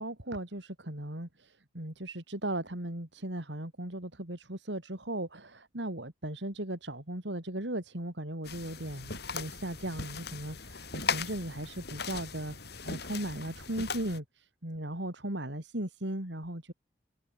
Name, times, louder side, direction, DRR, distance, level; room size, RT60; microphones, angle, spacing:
voice 1, 0.0-16.7, right 1 dB, 75° right, 4.1 m, -37 dB
sound 1, 8.4-14.2, left 5 dB, 60° left, 4.7 m, -38 dB
head